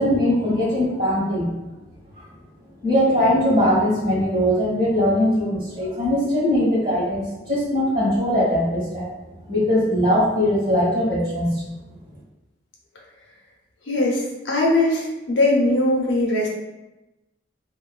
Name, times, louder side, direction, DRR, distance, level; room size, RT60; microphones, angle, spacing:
voice 1, 0.0-1.5 2.8-9.0 9.5-11.6, equal, 50° right, -7 dB, 1.4 m, -20 dB
voice 2, 13.9-16.5, left 2 dB, 75° left, -2 dB, 0.6 m, -20 dB
2.9 x 2.2 x 2.4 m, 1.0 s
head